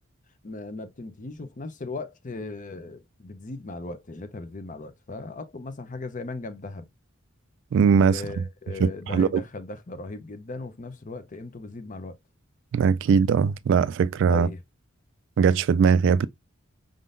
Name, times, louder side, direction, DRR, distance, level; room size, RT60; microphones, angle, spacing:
voice 1, 0.4-6.9 8.1-12.2 14.3-14.6, left 3 dB, 40° left, 0.7 m, -37 dB
voice 2, 7.7-8.4 8.8-9.4 12.7-14.5 15.4-16.3, right 6 dB, 60° right, 0.3 m, -20 dB
5.1 x 3.7 x 2.5 m
head